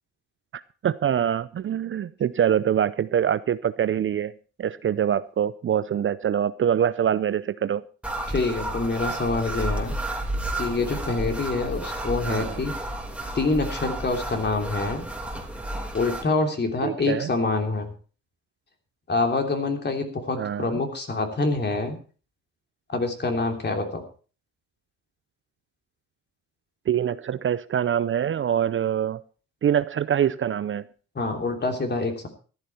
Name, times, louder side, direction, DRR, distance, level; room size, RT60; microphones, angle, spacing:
voice 1, 0.5-4.3 4.6-7.8 12.3-12.6 16.8-17.3 20.4-20.8 26.9-29.2 29.6-30.8, right 9 dB, 40° right, 0.6 m, -24 dB
sound 1, 8.0-16.2, right 1 dB, 5° right, 2.9 m, -31 dB
voice 2, 8.3-9.9 10.6-12.7 13.3-15.1 15.9-17.9 19.1-22.0 22.9-24.0 31.1-32.3, left 3 dB, 35° left, 3.2 m, -26 dB
14.0 x 11.5 x 4.4 m
cardioid pair, 90°, 30 cm